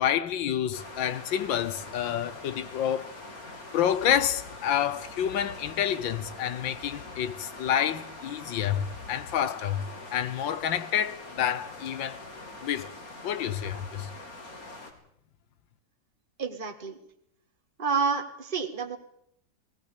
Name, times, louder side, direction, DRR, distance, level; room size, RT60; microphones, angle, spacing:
voice 1, 0.0-3.1 3.7-9.8 10.1-12.2 12.6-12.9 13.2-14.1, left 10 dB, 85° left, 1.7 m, -28 dB
sound 1, 0.7-14.9, left 2 dB, 50° left, 3.4 m, -44 dB
voice 2, 16.4-17.0 17.8-19.0, right 5 dB, 30° right, 2.0 m, -29 dB
19.0 x 19.0 x 8.5 m
omnidirectional pair, 2.0 m